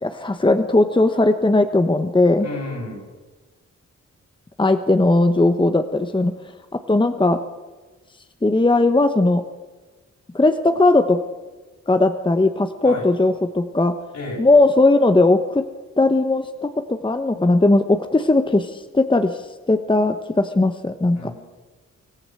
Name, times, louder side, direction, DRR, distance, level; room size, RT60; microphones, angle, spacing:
voice 1, 0.0-2.5 4.6-6.4 6.7-7.4 8.4-9.4 10.3-11.2 11.9-13.9 14.4-15.6 16.0-19.4 19.7-21.3, left 2 dB, 15° left, 8 dB, 1.1 m, -18 dB
voice 2, 2.4-3.1 12.8-13.1 14.1-14.5 21.1-21.3, left 2 dB, 70° left, -1 dB, 7.9 m, -31 dB
25.0 x 14.5 x 7.7 m, 1.3 s
cardioid pair, 70°, 29 cm